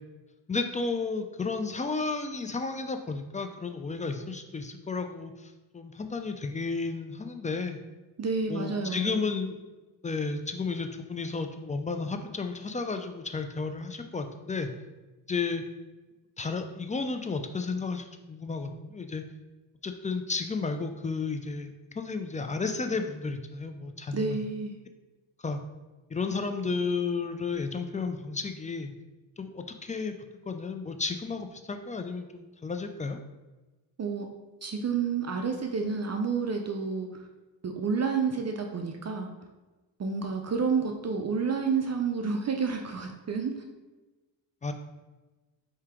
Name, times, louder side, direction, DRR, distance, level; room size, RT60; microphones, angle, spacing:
voice 1, 0.5-7.8 8.5-9.6 10.0-14.7 15.3-15.6 16.4-19.2 19.8-24.5 25.4-25.6 26.1-28.9 29.4-30.1 30.5-33.2 44.6-44.7, left 4 dB, 20° left, 6 dB, 0.3 m, -32 dB
voice 2, 8.2-9.2 24.1-24.7 34.0-34.3 34.6-37.1 37.6-39.3 40.0-43.5, right 5 dB, 35° right, 3 dB, 0.5 m, -29 dB
4.7 x 2.8 x 3.5 m, 1.2 s
cardioid pair, 60°, 45 cm